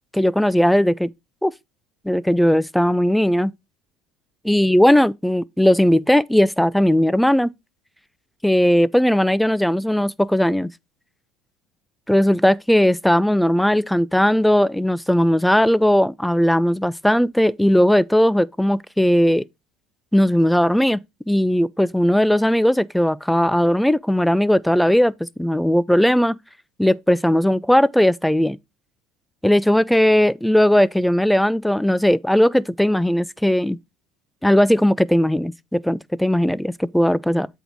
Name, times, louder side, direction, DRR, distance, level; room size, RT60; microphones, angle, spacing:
voice 1, 0.1-1.1 1.4-1.5 2.1-3.5 4.4-7.5 8.4-10.7 12.1-19.4 20.1-21.0 21.3-26.4 26.8-28.6 29.4-33.8 34.4-37.5, equal, ahead, 0.3 m, -18 dB
8.0 x 4.5 x 4.0 m
cardioid pair, 140°, 0 cm